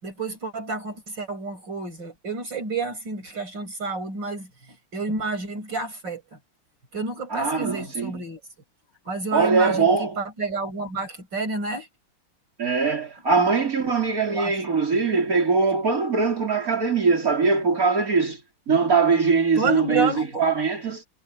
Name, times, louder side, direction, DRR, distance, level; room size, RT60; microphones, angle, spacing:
voice 1, 0.0-6.4 6.9-8.4 9.0-11.9 14.2-14.6 19.6-20.5, right 3 dB, 65° right, 6.9 m, -30 dB
voice 2, 7.3-8.1 9.3-10.2 12.6-18.4 18.7-21.0, right 4 dB, 45° right, 4.2 m, -22 dB
omnidirectional pair, 2.1 m